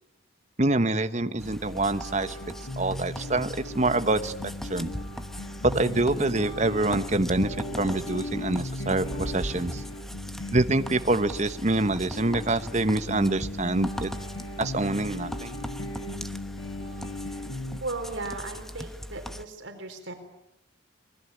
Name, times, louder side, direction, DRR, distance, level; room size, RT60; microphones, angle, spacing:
voice 1, 0.6-2.4 2.8-4.3 4.7-4.9 5.7-9.8 10.5-14.1 14.6-15.5, right 2 dB, 35° right, 10 dB, 1.2 m, -26 dB
sound 1, 1.2-17.8, left 1 dB, 80° left, 6.7 m, -38 dB
sound 2, 1.4-19.4, equal, ahead, 1.0 m, -39 dB
voice 2, 17.8-20.1, right 2 dB, 80° right, 6 dB, 4.4 m, -36 dB
26.0 x 21.0 x 8.6 m, 0.85 s
head